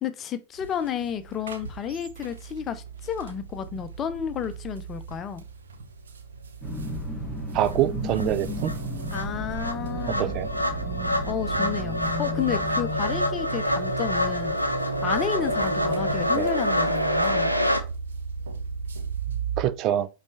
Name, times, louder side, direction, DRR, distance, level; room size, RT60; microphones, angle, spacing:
voice 1, 0.0-5.4 9.1-10.4 11.3-14.6 15.0-17.5, left 8 dB, 30° left, 0.7 m, -31 dB
sound 1, 0.5-19.6, right 7 dB, 65° right, 1.3 m, -38 dB
sound 2, 6.6-16.3, equal, ahead, 2.0 m, -34 dB
voice 2, 7.5-8.7 10.2-10.5 16.4-16.5 19.6-20.1, right 12 dB, 40° right, 0.4 m, -25 dB
sound 3, 7.7-7.8 8.1-17.8, left 1 dB, 90° right, 0.6 m, -27 dB
5.3 x 4.1 x 4.6 m
figure-of-eight pair, 90°, 0 cm